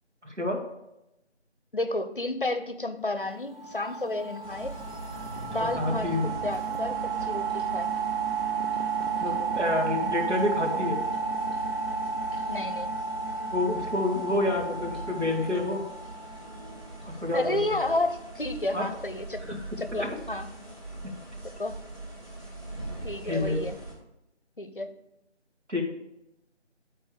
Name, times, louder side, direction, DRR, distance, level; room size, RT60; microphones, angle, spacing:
voice 1, 0.2-0.6 5.6-6.2 9.2-11.0 13.5-15.8 17.0-17.6 18.7-18.9 19.5-19.6 20.0-20.2 23.2-23.6 25.7-25.8, left 2 dB, 80° right, 0 dB, 2.3 m, -28 dB
voice 2, 1.7-4.8 5.5-7.9 12.5-12.9 17.3-20.5 21.6-21.8 23.0-23.8 24.6-24.9, left 2 dB, 50° left, 9 dB, 0.6 m, -31 dB
sound 1, 3.1-6.8, left 2 dB, ahead, 0.5 m, -46 dB
sound 2, 3.6-17.0, right 5 dB, 55° right, 0.6 m, -32 dB
sound 3, 4.4-23.9, right 2 dB, 20° right, 1.5 m, -43 dB
10.5 x 4.5 x 4.9 m, 0.89 s
figure-of-eight pair, 165°, 35 cm